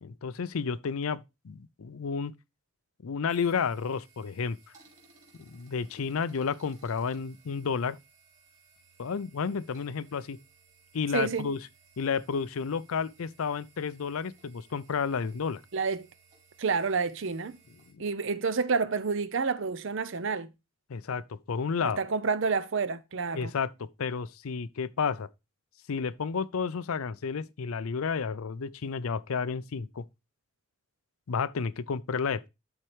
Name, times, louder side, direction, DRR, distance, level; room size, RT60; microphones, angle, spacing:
voice 1, 0.0-2.3 3.0-4.6 5.4-8.0 9.0-10.4 10.9-11.6 12.0-15.6 17.9-18.0 20.9-22.0 23.3-25.3 25.9-30.0 31.3-32.5, left 5 dB, 80° left, 0.5 m, -31 dB
sound 1, 3.3-17.9, right 4 dB, 30° right, 3.3 m, -61 dB
voice 2, 11.1-11.5 15.7-16.1 16.6-17.6 18.0-20.5 21.8-23.5, right 5 dB, 60° right, 0.6 m, -29 dB
12.0 x 4.4 x 3.2 m
head